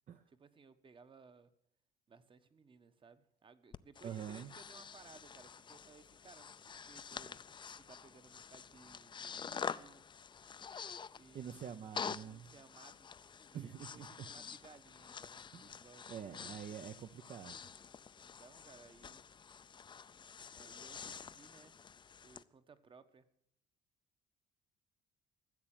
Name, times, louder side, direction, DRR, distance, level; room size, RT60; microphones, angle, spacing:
voice 1, 0.3-1.5 2.1-10.1 11.2-11.8 12.2-15.4 15.7-16.1 18.2-19.2 20.5-21.8 22.2-23.3, right 4 dB, 30° right, 12 dB, 1.1 m, -61 dB
Breathing, 3.7-22.4, left 6 dB, 30° left, 0.5 m, -48 dB
voice 2, 4.0-4.5 11.3-12.5 13.5-14.3 15.5-15.8 16.1-17.7, right 8 dB, 45° right, 9 dB, 0.7 m, -46 dB
14.5 x 7.6 x 8.9 m, 0.74 s
cardioid pair, 110°, 17 cm